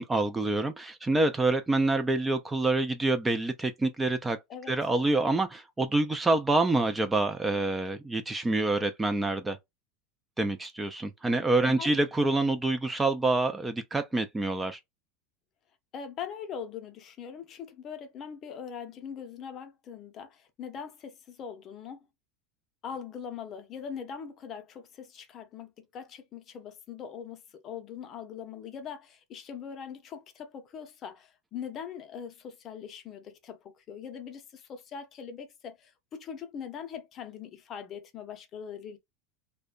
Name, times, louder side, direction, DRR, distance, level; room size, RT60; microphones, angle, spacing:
voice 1, 0.0-4.4 4.7-9.6 10.4-14.8, right 2 dB, 10° right, 0.3 m, -27 dB
voice 2, 11.6-12.0 15.9-22.0 22.8-39.0, left 7 dB, 35° left, 0.6 m, -41 dB
2.7 x 2.1 x 2.3 m
supercardioid pair, 135°, 0 cm